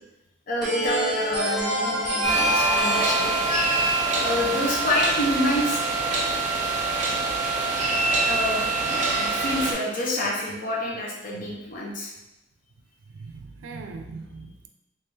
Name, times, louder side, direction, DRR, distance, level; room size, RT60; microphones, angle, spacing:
voice 1, 0.5-3.3 4.2-5.8 8.2-8.6 9.2-12.1, left 1 dB, 45° left, -4 dB, 0.7 m, -27 dB
sound 1, 0.6-5.2, right 1 dB, ahead, 1.4 m, -28 dB
sound 2, 2.2-9.7, right 3 dB, 40° right, 0.7 m, -24 dB
voice 2, 13.1-14.7, right 4 dB, 85° right, 6 dB, 0.4 m, -40 dB
3.5 x 3.2 x 2.8 m, 0.94 s
head